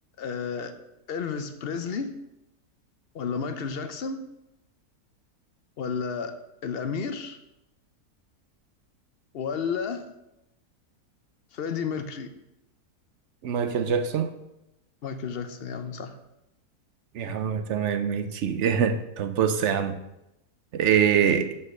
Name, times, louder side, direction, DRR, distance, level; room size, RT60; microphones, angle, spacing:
voice 1, 0.2-0.7 1.1-2.1 3.1-4.2 5.8-6.4 6.6-7.4 9.3-10.1 11.5-12.3 15.0-16.2, left 6 dB, 60° left, 0.6 m, -31 dB
voice 2, 13.4-14.3 17.1-20.0 20.7-21.5, right 7 dB, 65° right, 0.7 m, -24 dB
6.3 x 5.5 x 6.5 m
omnidirectional pair, 1.7 m